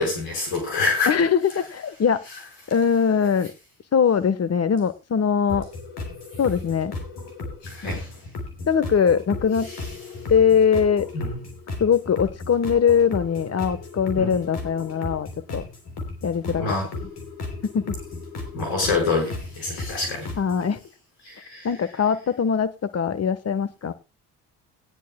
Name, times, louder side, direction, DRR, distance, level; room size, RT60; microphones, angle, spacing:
voice 1, 0.0-1.1 7.6-8.1 11.1-11.4 14.2-14.4 16.5-16.9 18.5-20.3 21.2-21.7, left 3 dB, 90° left, 5.1 m, -26 dB
voice 2, 1.1-2.2 2.7-3.5 3.9-5.7 6.4-6.9 8.7-9.7 10.3-11.1 11.8-15.6 16.2-16.7 17.6-18.0 20.4-20.8 21.6-23.9, left 7 dB, 35° left, 1.2 m, -21 dB
sound 1, 5.5-20.7, left 3 dB, 75° left, 3.4 m, -35 dB
19.0 x 10.0 x 2.3 m
supercardioid pair, 65°, 40 cm